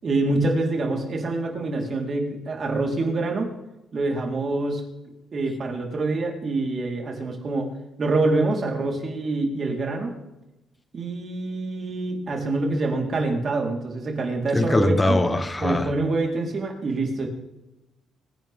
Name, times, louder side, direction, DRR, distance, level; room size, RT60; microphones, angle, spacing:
voice 1, 0.0-3.5 3.9-4.8 5.3-7.7 8.0-10.2 10.9-15.2 15.6-17.3, right 2 dB, 45° right, 1 dB, 4.3 m, -26 dB
voice 2, 14.5-15.9, left 2 dB, 20° left, 11 dB, 1.4 m, -22 dB
25.5 x 10.5 x 3.7 m, 0.96 s
cardioid pair, 90°, 0 cm